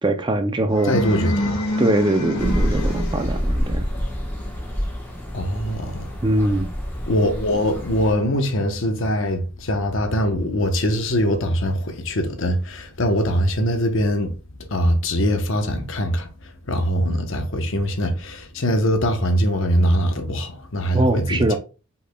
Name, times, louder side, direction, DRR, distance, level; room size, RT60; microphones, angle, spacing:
voice 1, 0.0-0.9 1.8-3.8 6.2-6.7 20.9-21.6, right 2 dB, 20° right, 0.4 m, -21 dB
sound 1, 0.7-3.6, left 1 dB, 85° left, 1.6 m, -26 dB
voice 2, 0.9-1.5 5.3-6.1 7.1-14.3 14.7-16.3 16.7-21.6, equal, 65° left, 0.8 m, -22 dB
sound 2, 2.4-8.1, equal, 10° left, 1.1 m, -27 dB
5.5 x 4.1 x 2.2 m
head